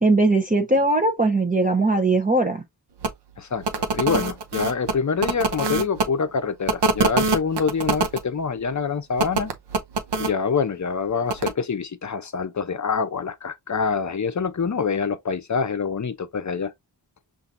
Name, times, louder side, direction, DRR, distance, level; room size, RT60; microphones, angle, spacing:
voice 1, 0.0-2.6, right 2 dB, 20° right, 0.8 m, -20 dB
sound 1, 3.0-3.1 3.6-6.0 6.7-8.2 9.2-10.3 11.3-11.5, right 3 dB, 75° right, 0.7 m, -24 dB
voice 2, 3.4-9.5 10.2-16.7, left 5 dB, 45° left, 0.7 m, -26 dB
5.6 x 2.6 x 2.5 m
wide cardioid pair, 75°, 42 cm